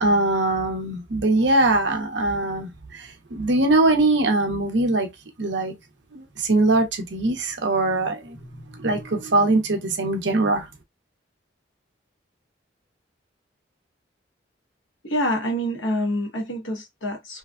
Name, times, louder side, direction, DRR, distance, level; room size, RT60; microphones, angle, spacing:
voice 1, 0.0-5.1 5.4-5.7 6.1-8.4 8.7-10.7, right 2 dB, 70° right, 0.8 m, -22 dB
voice 2, 15.0-17.4, equal, 90° left, 1.0 m, -26 dB
3.2 x 2.3 x 2.3 m
head